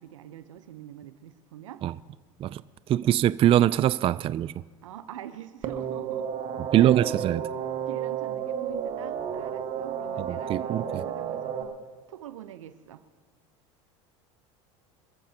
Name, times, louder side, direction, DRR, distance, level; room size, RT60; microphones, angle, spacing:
voice 1, 0.0-1.8 3.1-3.2 4.8-7.0 7.9-11.8 12.1-13.0, right 11 dB, 85° right, 0.9 m, -44 dB
voice 2, 2.9-4.5 6.7-7.5 10.2-11.0, right 12 dB, 35° right, 0.4 m, -23 dB
sound 1, 5.6-11.6, right 8 dB, 50° right, 1.6 m, -32 dB
26.5 x 14.5 x 2.9 m
hypercardioid pair, 90°, 16 cm